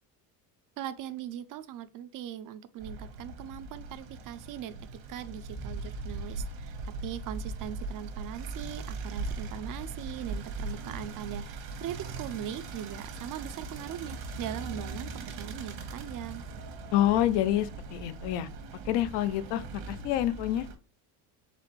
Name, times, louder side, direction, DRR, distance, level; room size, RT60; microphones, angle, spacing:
voice 1, 0.8-4.7 5.1-6.8 7.0-16.4, right 11 dB, 45° right, 0.5 m, -40 dB
sound 1, 2.8-20.8, right 3 dB, 80° right, 1.2 m, -40 dB
voice 2, 16.9-18.5 18.9-20.7, left 12 dB, 60° left, 0.6 m, -27 dB
4.1 x 3.8 x 3.1 m
supercardioid pair, 110°, 47 cm